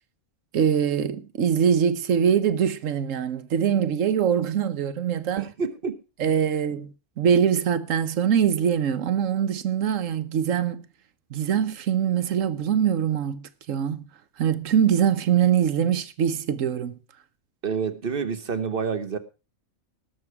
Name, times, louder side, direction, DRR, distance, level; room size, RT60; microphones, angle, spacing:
voice 1, 0.5-5.5 6.2-6.9 7.2-10.8 11.3-14.1 14.4-17.0, right 8 dB, 85° right, 1.3 m, -23 dB
voice 2, 5.4-6.0 17.6-19.2, right 6 dB, 50° right, 1.2 m, -28 dB
19.0 x 6.9 x 4.7 m
omnidirectional pair, 1.3 m